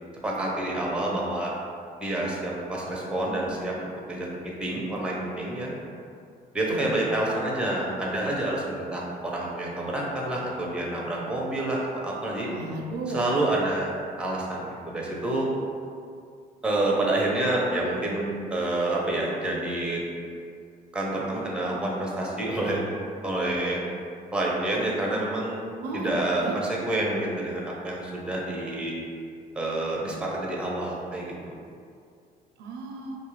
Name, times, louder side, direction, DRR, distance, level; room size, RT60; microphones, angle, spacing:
voice 1, 0.2-1.5 2.0-5.7 6.5-12.5 13.1-13.9 14.2-15.5 16.6-20.0 20.9-22.8 23.2-23.8 24.3-25.6 25.9-28.9 29.5-31.6, right 1 dB, 5° right, -3 dB, 0.5 m, -28 dB
voice 2, 12.5-13.3 25.8-26.2 26.4-26.5 32.6-33.2, right 3 dB, 75° right, 1 dB, 0.4 m, -34 dB
2.6 x 2.3 x 3.1 m, 2.3 s
cardioid pair, 110°, 17 cm